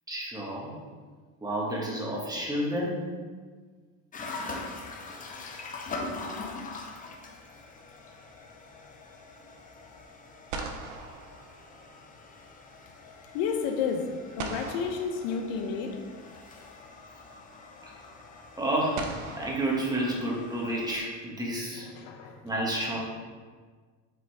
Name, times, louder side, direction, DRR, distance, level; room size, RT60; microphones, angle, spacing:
voice 1, 0.1-0.7 1.4-3.0 17.8-17.9 18.6-19.1 19.4-21.9 22.4-23.0, right 1 dB, 10° right, -3 dB, 1.5 m, -30 dB
sound 1, 4.1-21.0, left 3 dB, 20° left, 0.7 m, -43 dB
sound 2, 5.0-5.9 10.0-10.1 10.5-12.2 14.4-16.0 17.3-17.4 18.9-20.6, right 4 dB, 85° right, 0.9 m, -41 dB
voice 2, 13.3-14.0 14.4-16.0 21.9-22.3, left 6 dB, 65° left, 5 dB, 0.9 m, -30 dB
8.0 x 3.8 x 3.5 m, 1.5 s
supercardioid pair, 120°, 37 cm